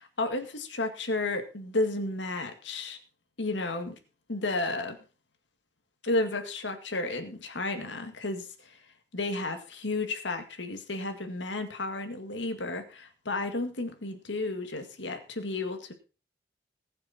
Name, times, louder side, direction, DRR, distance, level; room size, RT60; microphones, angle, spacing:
voice 1, 0.0-3.0 3.4-4.0 4.3-5.0 6.0-8.8 9.1-15.9, left 2 dB, 85° left, 6 dB, 2.0 m, -32 dB
20.0 x 6.7 x 4.3 m, 0.34 s
head